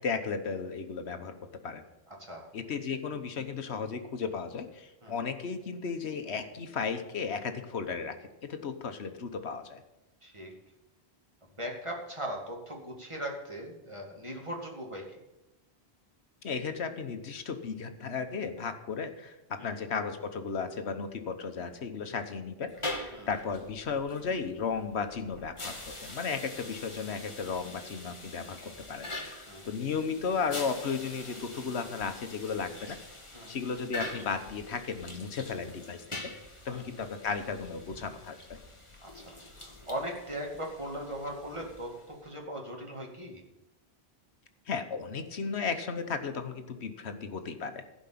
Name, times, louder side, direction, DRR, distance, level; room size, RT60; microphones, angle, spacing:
voice 1, 0.0-1.4 1.6-1.8 2.5-8.2 8.4-9.8 16.4-28.6 28.9-33.0 33.5-36.0 36.6-38.6 44.7-47.8, left 5 dB, 85° left, 8 dB, 1.3 m, -35 dB
voice 2, 2.1-2.5 5.0-5.2 10.2-10.5 11.6-15.2 19.6-19.8 23.1-23.3 29.5-29.7 33.3-33.6 36.7-36.9 39.0-43.4, equal, 30° right, 0 dB, 2.3 m, -39 dB
sound 1, 22.7-42.3, left 2 dB, 30° left, 1.7 m, -44 dB
15.5 x 5.3 x 8.5 m, 0.98 s
omnidirectional pair, 1.1 m